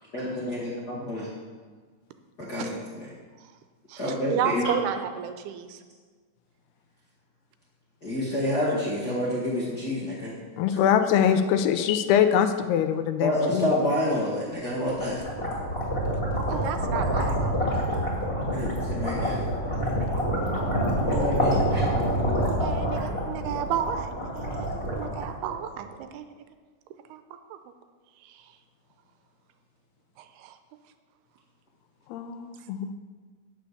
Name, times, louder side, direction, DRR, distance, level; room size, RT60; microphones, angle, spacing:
voice 1, 0.1-1.3 2.4-3.1 4.0-4.7 8.0-10.3 13.2-15.2 18.5-19.4 21.0-21.8, left 1 dB, 50° left, -6 dB, 1.2 m, -28 dB
voice 2, 3.9-5.8 16.5-17.9 22.3-26.3 27.1-27.2 27.5-27.6 28.2-28.4 30.2-30.6, right 9 dB, 85° right, 9 dB, 2.6 m, -33 dB
voice 3, 10.6-13.7 32.1-32.9, left 8 dB, 80° left, 9 dB, 2.6 m, -23 dB
sound 1, 14.7-25.8, equal, 20° left, 2.1 m, -27 dB
9.4 x 8.2 x 6.6 m, 1.5 s
omnidirectional pair, 4.7 m